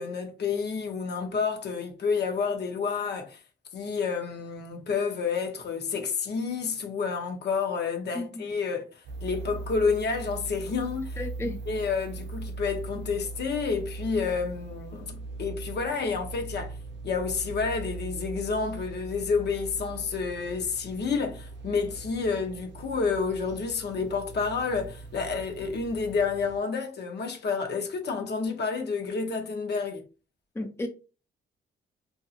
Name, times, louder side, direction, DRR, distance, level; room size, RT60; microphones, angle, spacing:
voice 1, 0.0-3.4 3.7-8.8 9.2-11.2 11.7-16.8 17.0-30.0, left 5 dB, 65° left, 0.8 m, -29 dB
voice 2, 8.1-8.5 11.2-11.6 30.5-30.9, left 1 dB, 15° left, 0.5 m, -33 dB
sound 1, 9.0-26.6, right 3 dB, 70° right, 0.5 m, -40 dB
2.7 x 2.6 x 2.4 m
cardioid pair, 90°, 19 cm